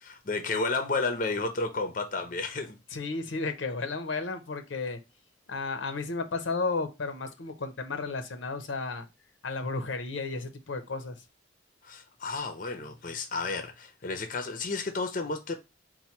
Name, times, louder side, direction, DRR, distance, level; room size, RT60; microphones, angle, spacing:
voice 1, 0.0-2.8 11.8-15.6, left 3 dB, 45° left, 0.6 m, -32 dB
voice 2, 2.9-5.0 5.5-9.0 9.4-11.2, left 3 dB, 85° left, 0.7 m, -33 dB
4.2 x 2.2 x 4.4 m
head